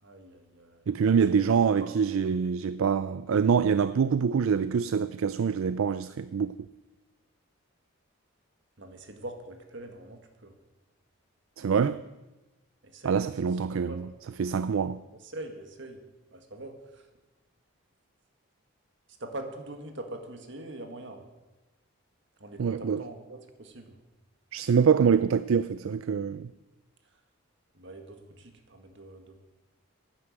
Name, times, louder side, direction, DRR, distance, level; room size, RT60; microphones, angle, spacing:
voice 1, 0.0-1.9 8.8-10.6 12.8-13.2 13.7-14.0 15.2-16.0 16.3-17.1 19.2-21.3 22.4-24.0 27.7-29.4, right 1 dB, 55° right, 1.7 m, -43 dB
voice 2, 0.9-6.5 11.6-12.0 13.0-14.1 14.4-15.0 22.6-23.0 24.5-26.5, right 6 dB, 75° right, 0.4 m, -25 dB
11.0 x 9.4 x 7.8 m
head